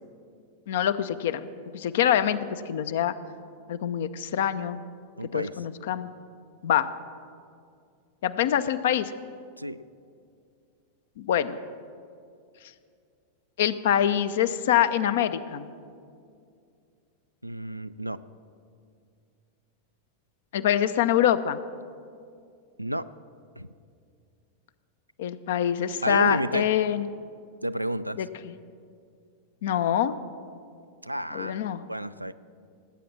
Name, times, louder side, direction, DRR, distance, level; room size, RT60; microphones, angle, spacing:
voice 1, 0.7-1.5 1.7-3.1 3.7-4.8 5.3-6.1 6.6-6.9 8.2-9.1 11.2-11.6 13.6-15.7 20.5-21.6 25.2-27.1 28.2-28.5 29.6-30.2 31.3-31.8, left 10 dB, 55° left, 13 dB, 0.6 m, -25 dB
voice 2, 5.2-5.6 9.6-9.8 17.4-18.2 22.8-23.1 23.6-23.7 26.0-26.7 27.6-28.2 31.0-31.6 31.9-32.3, right 1 dB, 90° right, 13 dB, 0.4 m, -31 dB
18.5 x 8.5 x 7.5 m, 2.4 s
figure-of-eight pair, 90°, 0 cm